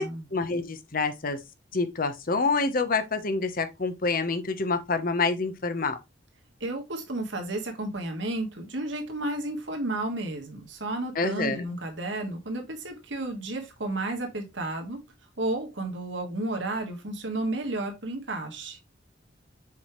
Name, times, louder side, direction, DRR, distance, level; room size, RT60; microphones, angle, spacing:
voice 1, 0.0-1.4 1.7-6.0 11.1-11.7, left 3 dB, 50° left, 1.0 m, -27 dB
voice 2, 6.6-15.0 15.4-18.9, right 2 dB, 85° right, 1.8 m, -32 dB
7.0 x 4.8 x 3.2 m
head